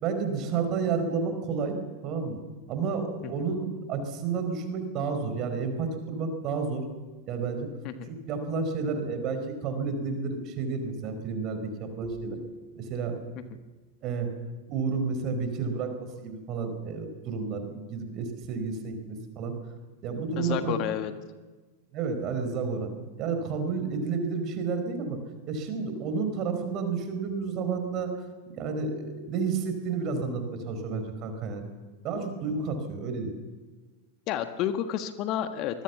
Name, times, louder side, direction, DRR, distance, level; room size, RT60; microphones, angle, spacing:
voice 1, 0.0-1.8 2.0-2.4 2.7-6.8 7.3-7.7 8.1-12.4 12.7-13.2 14.0-14.3 14.7-19.5 20.0-20.8 21.9-22.9 23.2-25.2 25.5-28.1 28.5-31.6 32.0-33.3, right 5 dB, 35° right, 8 dB, 4.9 m, -31 dB
sound 1, 12.0-13.7, right 2 dB, 10° right, 7.3 m, -43 dB
voice 2, 20.4-21.1 34.3-35.8, left 10 dB, 40° left, 10 dB, 1.5 m, -30 dB
24.5 x 21.0 x 7.2 m, 1.3 s
figure-of-eight pair, 90°, 0 cm